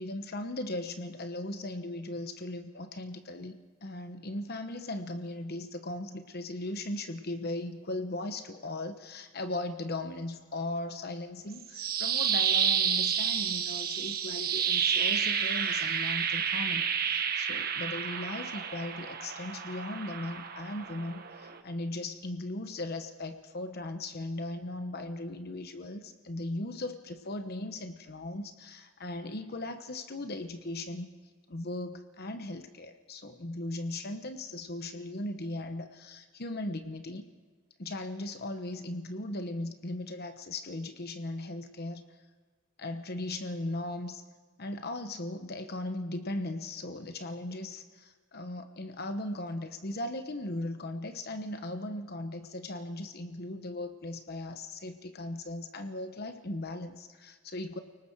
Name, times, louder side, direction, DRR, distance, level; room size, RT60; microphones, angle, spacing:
voice 1, 0.0-31.1 31.5-37.2 37.8-42.0 42.8-44.2 44.6-57.8, left 1 dB, 45° left, 8 dB, 1.1 m, -38 dB
sound 1, 11.5-21.6, right 7 dB, 45° right, 1.4 m, -30 dB
29.5 x 19.0 x 4.7 m, 1.5 s
head